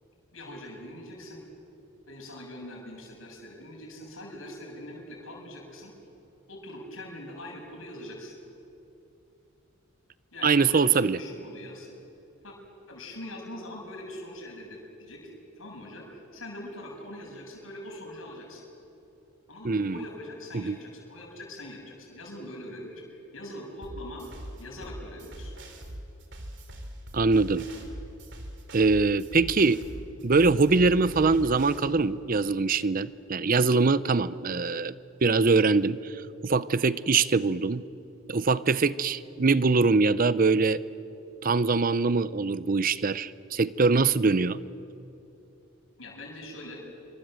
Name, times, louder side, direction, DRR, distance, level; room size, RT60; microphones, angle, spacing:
voice 1, 0.3-1.4 2.1-5.9 6.5-8.3 10.3-11.9 12.4-12.5 12.9-15.3 15.6-18.6 19.5-24.2 24.6-25.5 46.0-46.8, left 1 dB, 80° left, 0 dB, 7.3 m, -42 dB
voice 2, 10.4-11.2 19.6-20.0 20.5-20.8 27.1-27.7 28.7-29.8 30.2-34.9 35.2-36.1 36.4-37.8 38.3-40.8 41.4-44.6, right 4 dB, 45° right, 16 dB, 0.6 m, -23 dB
sound 1, 23.8-31.8, right 1 dB, 60° right, 3.1 m, -42 dB
27.0 x 24.5 x 7.8 m, 2.8 s
head